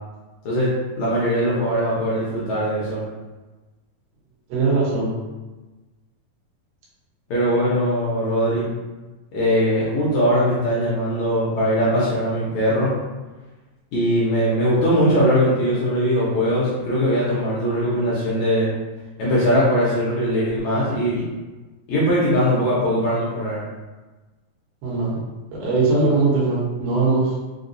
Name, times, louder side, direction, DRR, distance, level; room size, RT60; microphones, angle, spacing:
voice 1, 1.0-3.0 7.3-8.7 9.3-13.0 13.9-18.7 19.2-21.3 21.9-23.6, equal, 70° left, -7 dB, 1.9 m, -20 dB
voice 2, 4.5-5.2 24.8-25.2 25.5-27.3, right 3 dB, 80° right, -6 dB, 2.8 m, -20 dB
5.8 x 2.3 x 2.6 m, 1.2 s
omnidirectional pair, 4.0 m